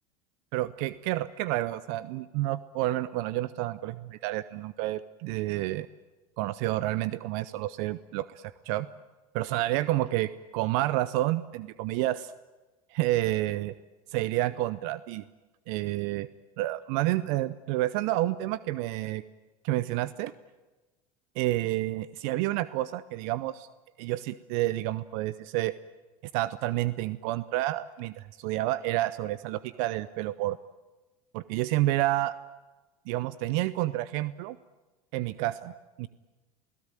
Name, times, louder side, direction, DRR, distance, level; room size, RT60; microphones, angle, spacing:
voice 1, 0.5-5.9 6.4-8.9 9.3-12.3 12.9-13.7 14.1-15.2 15.7-16.3 16.6-19.2 19.6-20.3 21.4-23.7 24.0-25.7 26.3-30.6 31.3-32.3 33.1-34.6 35.1-36.1, right 16 dB, 65° right, 17 dB, 0.7 m, -29 dB
28.0 x 17.0 x 9.1 m, 1.2 s
hypercardioid pair, 75°, 18 cm